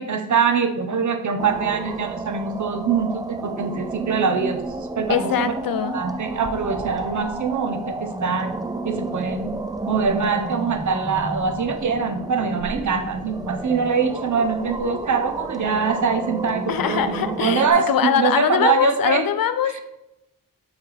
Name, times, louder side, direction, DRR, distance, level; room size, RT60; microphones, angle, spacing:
voice 1, 0.0-4.6 4.9-5.5 5.9-8.5 8.8-9.6 9.9-19.3 19.7-19.8, right 5 dB, 60° right, 6 dB, 0.7 m, -23 dB
sound 1, 1.4-17.7, right 2 dB, 10° right, 0.3 m, -32 dB
voice 2, 5.1-6.0 16.7-19.8, left 9 dB, 85° left, 11 dB, 0.6 m, -22 dB
8.1 x 3.5 x 4.0 m, 0.90 s
wide cardioid pair, 105°, 34 cm